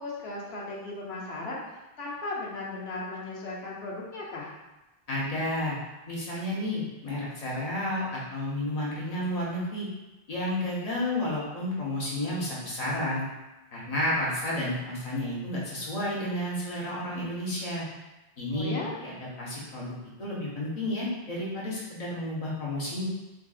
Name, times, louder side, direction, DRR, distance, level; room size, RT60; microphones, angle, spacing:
voice 1, 0.0-4.5 18.5-18.9, left 2 dB, 75° left, -4 dB, 1.0 m, -36 dB
voice 2, 5.1-5.7 6.1-9.9 10.3-13.3 13.7-17.8 18.4-23.1, left 1 dB, 40° left, -6 dB, 0.9 m, -31 dB
3.7 x 2.5 x 2.4 m, 1.0 s
omnidirectional pair, 1.1 m